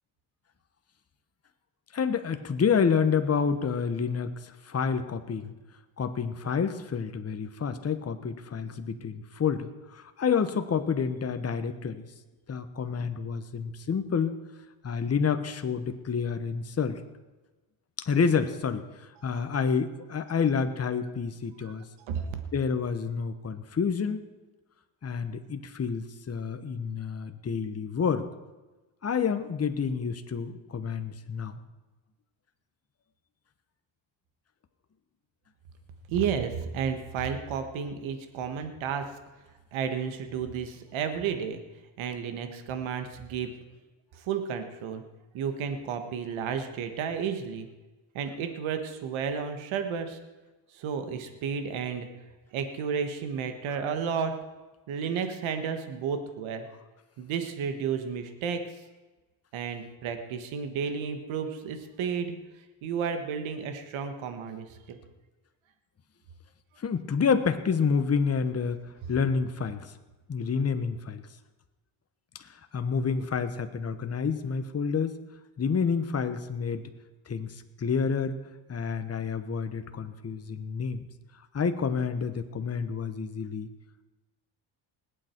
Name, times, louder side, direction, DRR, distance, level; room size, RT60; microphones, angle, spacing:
voice 1, 1.9-5.5 6.0-12.1 12.5-14.4 14.8-17.0 18.0-21.8 22.5-24.3 25.0-28.3 29.0-31.6 53.7-53.8 66.8-69.9 70.3-71.2 72.4-75.2 75.6-76.9 77.3-78.4 78.7-81.1 81.5-83.7, left 6 dB, 30° left, 9 dB, 1.2 m, -29 dB
voice 2, 22.0-22.4 36.1-39.0 39.7-41.6 42.0-43.5 44.2-45.0 45.3-47.7 48.1-50.2 50.7-52.1 52.5-54.3 54.9-56.7 57.2-58.6 59.5-62.3 62.8-65.0, right 7 dB, 80° right, 7 dB, 1.6 m, -32 dB
20.0 x 8.9 x 4.6 m, 1.2 s
cardioid pair, 90°, 46 cm